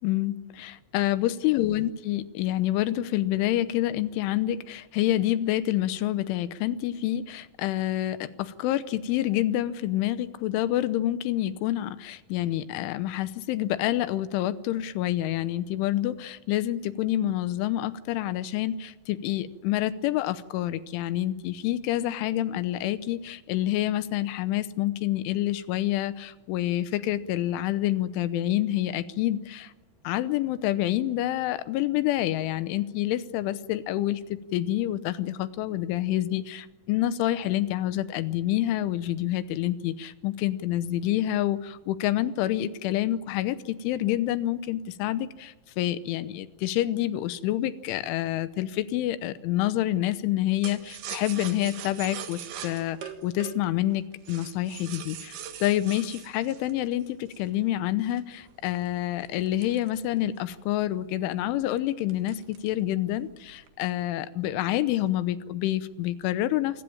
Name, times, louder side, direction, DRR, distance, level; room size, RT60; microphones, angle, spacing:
voice 1, 0.0-29.7 30.1-66.8, left 13 dB, 85° left, 13 dB, 3.4 m, -28 dB
sound 1, 50.6-57.5 58.1-60.5 60.9-61.0 61.3-61.6 62.1-62.8 63.1-63.7, right 9 dB, 65° right, 3.3 m, -41 dB
28.0 x 18.0 x 8.8 m, 1.1 s
omnidirectional pair, 5.5 m